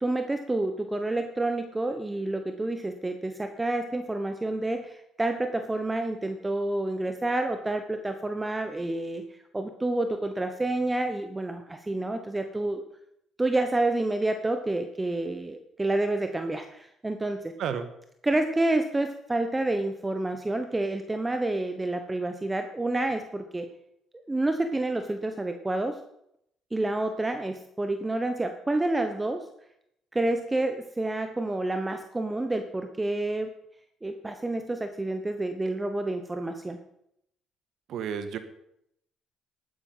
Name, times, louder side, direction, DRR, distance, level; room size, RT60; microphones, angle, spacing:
voice 1, 0.0-12.8 13.4-17.5 18.2-23.7 24.3-26.0 26.7-29.4 30.1-33.5 34.0-36.8, right 2 dB, 15° right, 7 dB, 1.0 m, -29 dB
voice 2, 37.9-38.4, right 7 dB, 70° right, 9 dB, 1.5 m, -31 dB
12.0 x 9.6 x 5.6 m, 0.76 s
cardioid pair, 85°, 0 cm